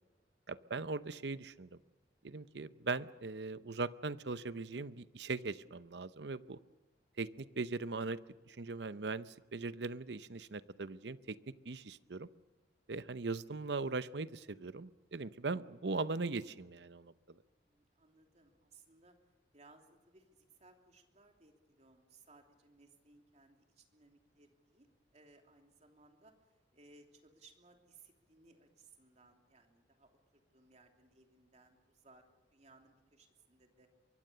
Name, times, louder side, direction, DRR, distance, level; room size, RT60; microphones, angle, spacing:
voice 1, 0.5-1.8 2.2-6.6 7.2-8.2 8.5-11.4 11.6-12.3 12.9-17.4, right 3 dB, 65° right, 14 dB, 0.8 m, -40 dB
voice 2, 17.4-19.1 19.5-24.9 25.1-32.2 32.5-33.9, right 3 dB, 40° right, 3 dB, 3.0 m, -64 dB
23.5 x 23.0 x 6.8 m, 1.3 s
head